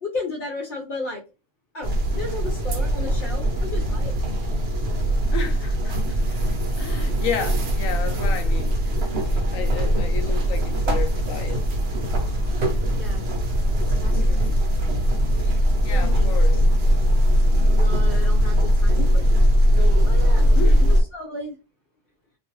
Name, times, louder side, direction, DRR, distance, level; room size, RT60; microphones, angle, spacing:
voice 1, 0.0-1.2 1.7-4.2 13.0-13.2 13.8-14.4 15.9-16.3 17.6-19.5 20.0-20.5 20.8-21.5, left 2 dB, 50° left, 0.7 m, -34 dB
sound 1, 1.8-21.0, equal, 55° right, 0.9 m, -20 dB
voice 2, 5.3-6.4 6.8-8.7 9.3-11.6 14.2-14.6 15.8-16.6 20.5-20.9, left 7 dB, 90° left, 1.0 m, -32 dB
2.5 x 2.3 x 3.0 m
omnidirectional pair, 1.4 m